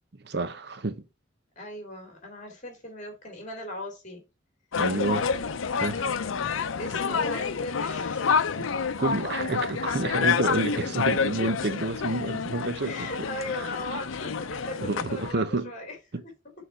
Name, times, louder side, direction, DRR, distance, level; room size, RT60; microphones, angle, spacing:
voice 1, 0.2-1.0 4.7-5.3 5.8-6.0 8.6-8.7 9.0-13.1 14.8-15.7, right 3 dB, 55° right, 0.7 m, -29 dB
voice 2, 1.6-4.2 6.0-6.5 6.8-8.6 9.0-9.6 12.8-16.3, left 1 dB, 35° left, 2.8 m, -38 dB
sound 1, 4.7-15.3, left 6 dB, 85° left, 0.6 m, -28 dB
6.5 x 4.2 x 5.2 m
head